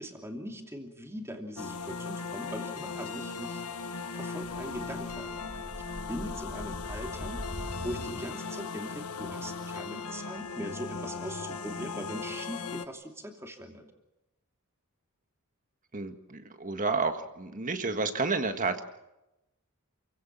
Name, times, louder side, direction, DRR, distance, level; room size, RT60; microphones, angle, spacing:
voice 1, 0.0-3.6 4.1-5.6 6.1-7.4 7.8-13.8, equal, 10° right, 3 dB, 2.8 m, -41 dB
sound 1, 1.6-12.8, left 4 dB, 80° left, 1.3 m, -38 dB
sound 2, 4.4-8.8, equal, 60° left, 3.5 m, -43 dB
voice 2, 15.9-18.8, right 3 dB, 35° right, 8 dB, 1.7 m, -30 dB
28.5 x 16.5 x 7.4 m, 0.94 s
head